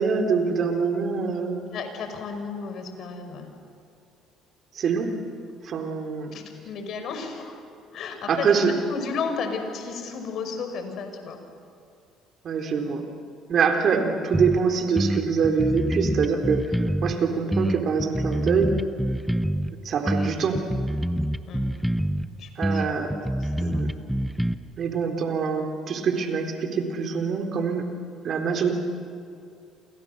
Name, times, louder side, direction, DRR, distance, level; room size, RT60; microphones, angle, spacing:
voice 1, 0.0-1.6 4.7-5.1 5.6-6.3 8.3-8.7 12.4-13.0 13.5-18.8 19.8-20.6 22.6-23.1 23.6-23.9 24.8-27.9 28.2-28.8, right 5 dB, 55° right, 4 dB, 4.0 m, -24 dB
voice 2, 1.7-3.5 6.3-7.6 7.9-8.5 8.9-11.4 21.5-21.6 22.4-23.0 23.4-23.8, left 5 dB, 60° left, 6 dB, 5.4 m, -33 dB
sound 1, 14.3-14.6 15.0-17.2 17.5-19.7 20.1-22.3 22.6-24.5, equal, 5° right, 1.2 m, -26 dB
28.5 x 28.5 x 6.8 m, 2.4 s
supercardioid pair, 70°, 0 cm